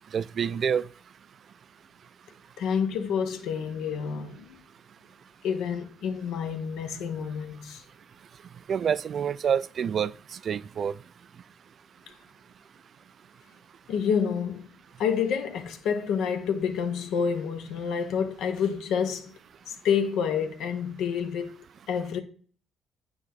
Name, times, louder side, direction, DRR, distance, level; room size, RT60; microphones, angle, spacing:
voice 1, 0.1-0.8 8.7-10.1 10.4-10.9, right 7 dB, 55° right, 0.3 m, -27 dB
voice 2, 2.6-4.6 5.4-7.8 13.9-14.7 15.0-19.3 19.7-22.2, left 7 dB, 85° left, 1.0 m, -28 dB
9.0 x 3.2 x 3.9 m
cardioid pair, 90°, 0 cm